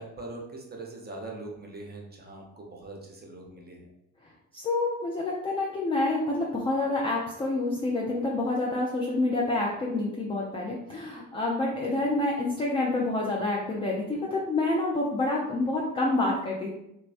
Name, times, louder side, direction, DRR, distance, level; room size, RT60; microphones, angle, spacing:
voice 1, 0.0-3.9 11.7-11.8, right 2 dB, 20° right, 0 dB, 0.7 m, -42 dB
voice 2, 4.5-16.7, left 2 dB, 15° left, -3 dB, 0.3 m, -28 dB
3.1 x 2.2 x 2.5 m, 0.83 s
figure-of-eight pair, 50°, 47 cm